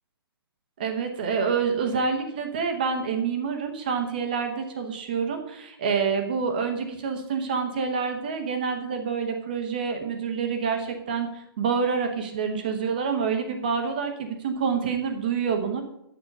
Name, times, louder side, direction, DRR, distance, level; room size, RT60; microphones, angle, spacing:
voice 1, 0.8-15.8, right 5 dB, 20° right, 5 dB, 0.9 m, -27 dB
9.4 x 7.3 x 5.3 m, 0.78 s
hypercardioid pair, 180°, 13 cm